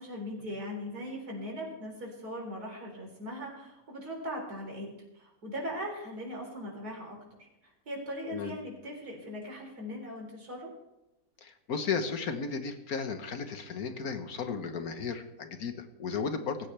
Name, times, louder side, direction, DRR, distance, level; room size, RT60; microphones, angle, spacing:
voice 1, 0.0-4.9 5.1-7.2 7.6-10.7, equal, 80° right, -1 dB, 4.6 m, -39 dB
voice 2, 8.3-8.6 11.4-16.7, left 5 dB, 70° left, 7 dB, 1.7 m, -34 dB
18.0 x 15.5 x 3.4 m, 0.93 s
omnidirectional pair, 1.6 m